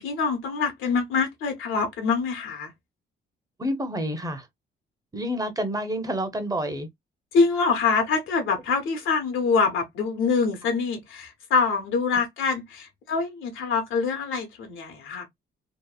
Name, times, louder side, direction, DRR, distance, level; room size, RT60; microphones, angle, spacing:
voice 1, 0.0-2.7 7.3-15.3, left 4 dB, 85° left, 0.9 m, -25 dB
voice 2, 3.6-4.4 5.1-6.9, equal, 15° right, 0.8 m, -28 dB
2.9 x 2.1 x 2.3 m
cardioid pair, 90°, 20 cm